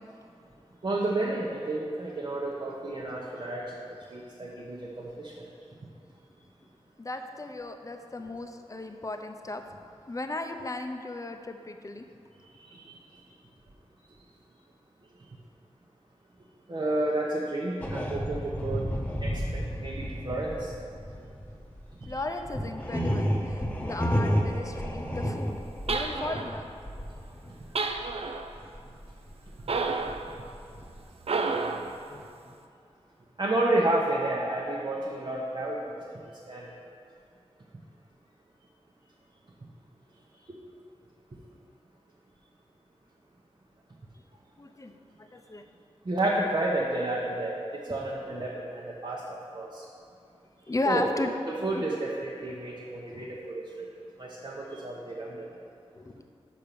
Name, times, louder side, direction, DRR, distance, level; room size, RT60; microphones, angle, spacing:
voice 1, 0.8-3.6 4.1-5.3 12.6-12.8 16.7-18.8 19.2-20.7 22.0-22.2 22.9-23.1 33.4-36.0 36.5-36.6 46.1-47.6 47.9-49.8 50.8-51.0 51.5-53.9 54.2-55.4, right 2 dB, 45° right, -4 dB, 0.9 m, -31 dB
voice 2, 7.0-9.6 10.1-12.1 22.1-25.6 25.9-26.7 31.5-31.6 32.1-32.3 44.6-44.9 45.2-45.6 47.9-48.0 50.7-51.3 51.7-51.8 53.1-53.4 56.0-56.2, left 2 dB, 30° left, 5 dB, 0.6 m, -35 dB
sound 1, 17.8-28.3 28.6-31.0, equal, 15° left, 0.9 m, -32 dB
sound 2, 25.9-26.6 27.8-28.5 29.7-30.3 31.2-31.9, right 4 dB, 65° right, 0.5 m, -30 dB
5.9 x 5.2 x 6.7 m, 2.4 s
wide cardioid pair, 60°, 11 cm